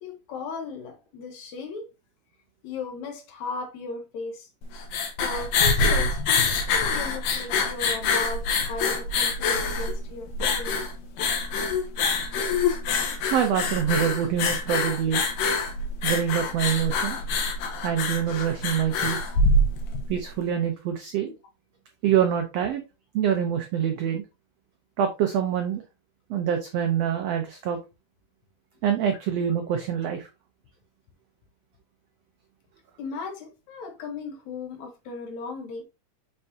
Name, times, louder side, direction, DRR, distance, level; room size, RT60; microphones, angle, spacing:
voice 1, 0.0-1.9 2.6-4.5 5.2-10.9 33.0-35.8, left 4 dB, 65° left, 2.1 m, -36 dB
sound 1, 4.6-20.1, left 3 dB, 90° left, 2.9 m, -25 dB
voice 2, 13.3-15.2 16.0-17.2 17.8-19.2 20.1-21.3 22.0-22.8 23.1-24.2 25.0-25.8 26.3-27.8 28.8-30.3, right 9 dB, 85° right, 1.4 m, -25 dB
6.7 x 5.5 x 2.7 m
omnidirectional pair, 3.8 m